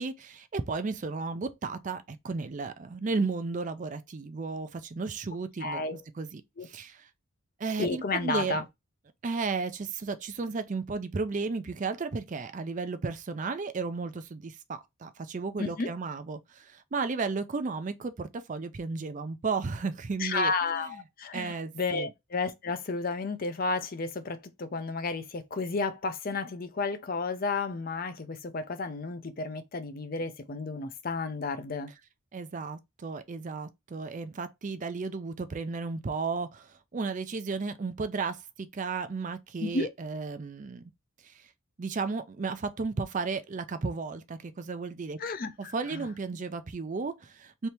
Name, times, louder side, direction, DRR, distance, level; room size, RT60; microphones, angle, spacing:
voice 1, 0.0-7.1 7.6-8.6 9.2-21.0 21.3-22.1 32.3-40.9 41.2-41.5 41.8-45.2 45.6-47.7, right 4 dB, 35° right, 0.4 m, -34 dB
voice 2, 5.6-6.0 6.6-6.7 7.8-8.6 15.6-15.9 20.2-31.9 39.6-39.9 45.2-46.0, left 3 dB, 45° left, 0.6 m, -32 dB
3.4 x 2.8 x 4.3 m
head